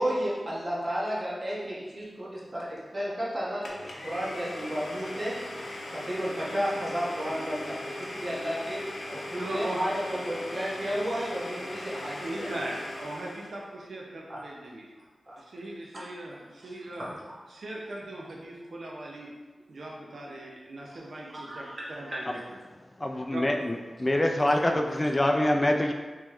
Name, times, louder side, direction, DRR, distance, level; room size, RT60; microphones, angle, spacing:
voice 1, 0.0-5.3 5.9-8.8 9.1-12.6 14.3-14.4 15.3-15.4 15.9-16.1 16.6-16.7 17.0-17.4 21.3-21.8, equal, 40° right, -6 dB, 1.1 m, -33 dB
Domestic sounds home sounds, 3.6-13.6, left 1 dB, 80° left, 0.6 m, -39 dB
voice 2, 9.4-9.9 12.0-14.9 15.4-17.0 17.5-19.3 19.7-21.6 22.0-22.4 23.3-23.4, right 1 dB, 75° right, -2 dB, 0.6 m, -39 dB
voice 3, 23.0-25.9, left 1 dB, 25° left, 3 dB, 0.3 m, -25 dB
3.5 x 3.1 x 3.0 m, 1.3 s
cardioid pair, 65°, 0 cm